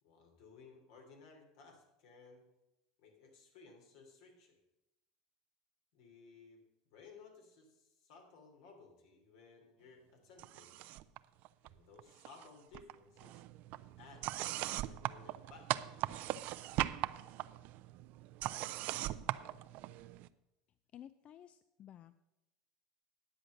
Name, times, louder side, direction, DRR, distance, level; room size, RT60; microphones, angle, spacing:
voice 1, 0.0-2.4 3.0-4.6 5.9-6.6 6.8-10.8 11.6-13.4 14.0-14.6 14.9-15.7, left 4 dB, 75° left, 3 dB, 3.0 m, -59 dB
sound 1, 10.4-11.2 11.4-12.5 12.7-20.3, right 15 dB, 55° right, 0.5 m, -40 dB
voice 2, 20.9-22.1, left 10 dB, 40° left, 13 dB, 0.4 m, -54 dB
10.0 x 7.7 x 6.5 m, 0.94 s
supercardioid pair, 105°, 3 cm